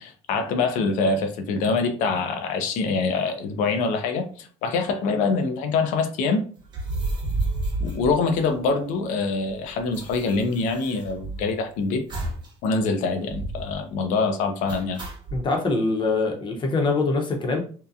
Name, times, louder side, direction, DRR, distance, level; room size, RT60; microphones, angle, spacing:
voice 1, 0.0-6.5 7.8-12.0 12.6-15.0, left 4 dB, 80° left, 7 dB, 0.5 m, -25 dB
sound 1, 6.6-8.9 9.2-9.3 9.5-11.6 12.1-12.5 12.8-12.9 13.3-13.8 14.7-15.4, right 2 dB, 35° right, 0.9 m, -31 dB
voice 2, 15.3-17.6, left 3 dB, 40° left, 3 dB, 0.7 m, -23 dB
2.7 x 2.1 x 2.4 m, 0.42 s
cardioid pair, 100°, 13 cm